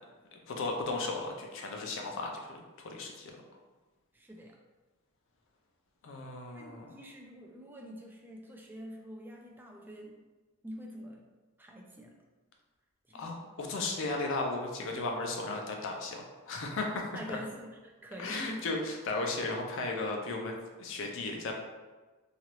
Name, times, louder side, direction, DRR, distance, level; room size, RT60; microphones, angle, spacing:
voice 1, 0.3-2.6 2.8-3.3 6.0-6.9 13.1-17.4 18.2-21.5, left 3 dB, 60° left, 1 dB, 0.4 m, -35 dB
voice 2, 4.1-4.6 6.5-10.1 10.6-11.2 11.6-12.2 13.1-13.3 17.1-18.6, equal, 10° right, 0 dB, 0.3 m, -45 dB
2.9 x 2.4 x 2.9 m, 1.3 s
head